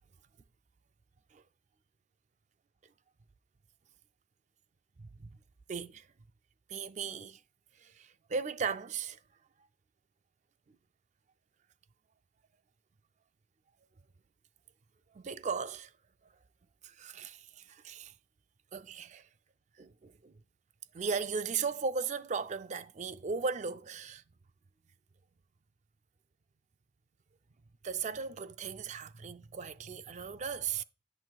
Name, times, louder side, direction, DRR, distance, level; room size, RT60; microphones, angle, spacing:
voice 1, 5.0-5.3 5.7-6.1 6.7-7.4 7.8-9.2 15.1-15.9 16.8-18.1 18.7-19.3 19.8-20.3 20.9-24.2 27.8-30.8, right 5 dB, 40° right, 0.4 m, -37 dB
11.0 x 5.9 x 2.3 m
head